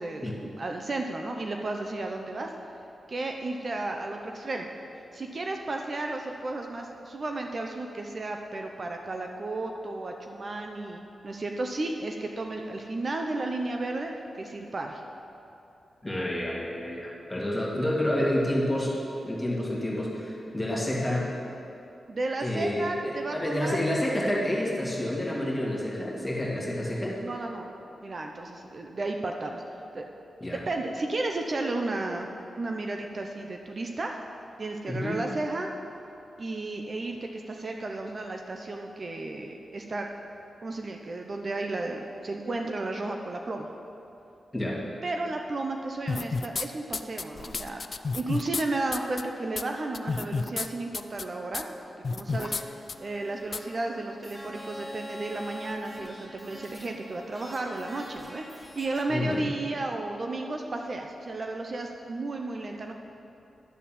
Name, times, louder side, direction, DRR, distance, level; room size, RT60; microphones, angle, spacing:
voice 1, 0.0-2.5 3.1-4.7 5.1-14.1 14.4-15.0 22.1-23.8 27.2-27.6 28.0-29.6 29.9-30.1 30.5-32.3 32.6-34.2 34.6-35.7 36.4-40.1 40.6-43.7 45.0-47.8 48.1-51.7 52.1-62.9, right 2 dB, 50° right, 3 dB, 0.7 m, -33 dB
voice 2, 16.0-19.0 19.2-21.3 22.4-27.2 30.4-30.6 34.9-35.2 44.5-44.9 59.1-59.5, left 1 dB, 15° left, -4 dB, 2.0 m, -29 dB
sound 1, 46.1-46.7 46.9-48.6 48.9-49.2 49.6-49.7 49.9-50.7 50.9-51.2 51.5-51.6 52.0-52.6 52.9-53.0 53.5-53.6, left 4 dB, 55° left, 0.3 m, -30 dB
sound 2, 52.3-59.0, equal, 15° right, 1.4 m, -45 dB
11.5 x 4.2 x 7.3 m, 2.9 s
cardioid pair, 65°, 0 cm